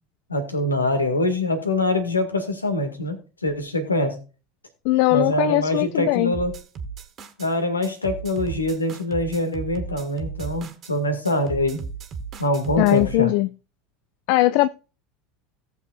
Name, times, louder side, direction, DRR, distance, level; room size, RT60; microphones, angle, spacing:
voice 1, 0.3-4.2 5.1-6.5 7.4-11.8 12.4-13.3, left 1 dB, 90° left, 1.8 m, -24 dB
voice 2, 4.8-6.3 12.8-13.5 14.3-14.7, left 19 dB, 60° left, 0.4 m, -19 dB
sound 1, 6.3-7.5 7.8-10.9 11.2-13.2, right 5 dB, 40° right, 1.6 m, -35 dB
17.5 x 6.9 x 2.4 m
figure-of-eight pair, 75°, 0 cm